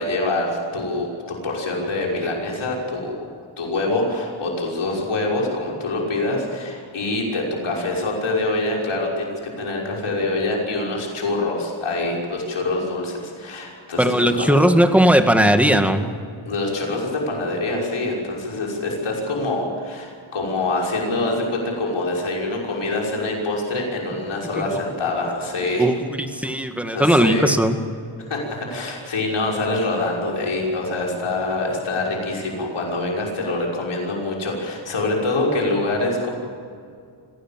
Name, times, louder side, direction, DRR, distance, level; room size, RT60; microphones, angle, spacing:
voice 1, 0.0-3.3 3.6-14.7 16.4-25.9 26.9-27.5 28.3-36.3, left 2 dB, 85° left, -2 dB, 6.0 m, -25 dB
voice 2, 14.0-16.1 24.6-24.8 25.8-27.8, equal, 5° right, 6 dB, 2.0 m, -18 dB
25.5 x 17.0 x 7.6 m, 2.3 s
wide cardioid pair, 95°, 48 cm